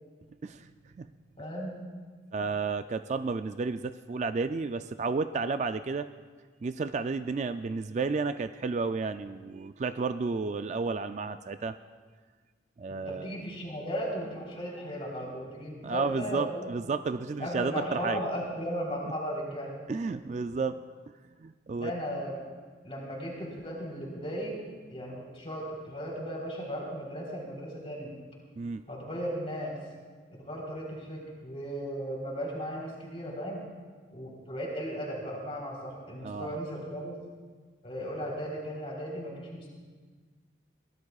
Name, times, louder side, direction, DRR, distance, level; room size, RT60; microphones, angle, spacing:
voice 1, 0.4-1.1 2.3-6.1 6.6-11.8 12.8-13.4 15.8-18.2 19.9-20.8 21.4-21.9 28.6-28.8 36.2-36.6, right 4 dB, 35° right, 10 dB, 0.3 m, -32 dB
voice 2, 1.4-1.7 12.9-16.7 17.4-19.7 21.7-22.3 22.8-24.6 24.9-28.1 28.9-29.8 30.3-33.6 34.1-37.2 37.8-39.7, equal, 30° left, -2 dB, 3.8 m, -36 dB
23.0 x 18.0 x 2.4 m, 1.5 s
head